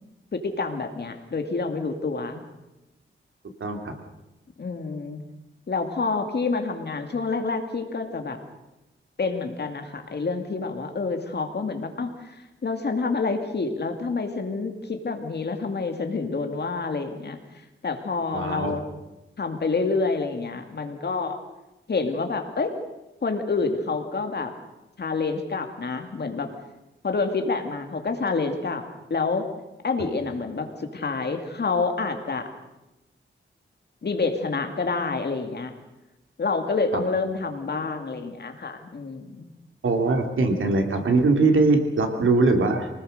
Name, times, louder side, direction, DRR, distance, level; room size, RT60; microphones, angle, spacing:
voice 1, 0.3-2.4 4.6-5.2 5.7-8.4 9.2-17.4 17.8-18.8 19.4-21.4 21.9-22.8 23.2-24.5 25.0-26.5 27.0-29.5 29.8-32.5 34.0-35.7 36.4-39.5, left 4 dB, 55° left, 6 dB, 2.4 m, -28 dB
voice 2, 3.6-3.9 18.3-18.8 39.8-42.9, right 3 dB, 80° right, 5 dB, 2.9 m, -21 dB
24.5 x 19.0 x 6.6 m, 0.99 s
wide cardioid pair, 140°, 20 cm